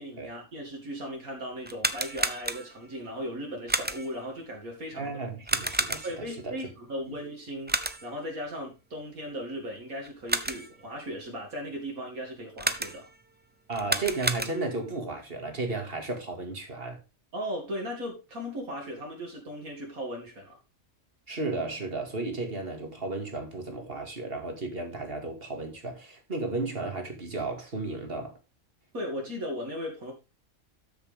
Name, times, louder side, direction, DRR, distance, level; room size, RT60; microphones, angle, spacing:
voice 1, 0.0-5.2 6.0-13.1 17.3-20.6 28.9-30.1, equal, 80° right, 3.0 m, -37 dB
sound 1, 1.6-2.9 3.7-4.2 5.5-6.3 7.7-8.2 10.0-10.8 12.6-13.2 13.7-14.9, right 2 dB, 15° right, 0.4 m, -31 dB
voice 2, 4.9-6.6 7.1-7.2 13.7-17.0 21.3-28.4, right 3 dB, 40° right, 2.5 m, -34 dB
13.0 x 6.7 x 3.6 m
omnidirectional pair, 1.5 m